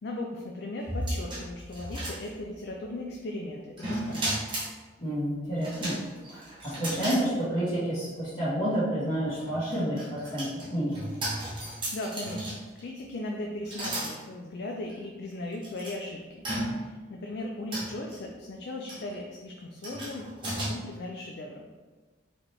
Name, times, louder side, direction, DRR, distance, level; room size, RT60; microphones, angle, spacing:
voice 1, 0.0-4.4 11.7-20.3 20.5-21.7, left 2 dB, 55° left, 0 dB, 0.4 m, -38 dB
sound 1, 0.8-2.7 3.8-4.7 5.6-7.2 7.7-7.8 9.3-12.8 13.7-14.2 14.9-15.0 15.6-15.9 16.4-17.0 17.7-18.2 18.9-19.1 19.8-20.7, right 1 dB, 25° right, 0.9 m, -35 dB
voice 2, 5.0-5.9 6.3-11.0, equal, 30° left, -15 dB, 1.3 m, -29 dB
4.1 x 3.0 x 3.2 m, 1.3 s
head